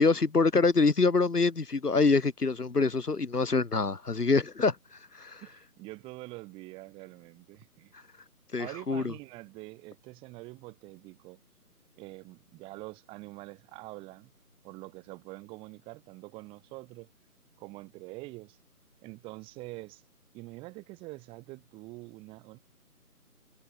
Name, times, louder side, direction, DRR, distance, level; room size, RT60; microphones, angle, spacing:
voice 1, 0.0-4.8 5.1-5.4 8.5-9.1, left 4 dB, 80° left, 2.3 m, -25 dB
voice 2, 5.4-7.9 8.6-11.4 12.0-14.3 14.6-17.1 17.6-18.6 19.0-20.0 20.3-22.6, right 22 dB, 10° right, 3.7 m, -45 dB
figure-of-eight pair, 155°, 46 cm